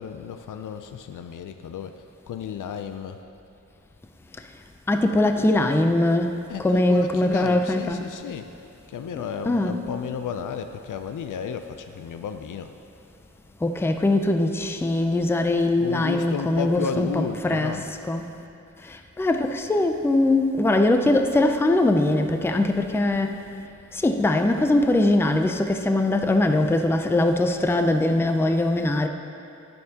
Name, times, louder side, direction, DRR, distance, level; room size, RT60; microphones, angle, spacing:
voice 1, 0.0-3.2 6.5-8.5 8.9-12.7 15.8-17.9, left 7 dB, 85° left, 7 dB, 0.5 m, -33 dB
voice 2, 4.9-8.0 9.4-9.8 13.6-17.8 18.1-18.2 18.9-23.4 23.9-29.1, left 2 dB, 10° left, 6 dB, 0.4 m, -21 dB
20.0 x 6.7 x 2.8 m, 2.8 s
wide cardioid pair, 150°, 30 cm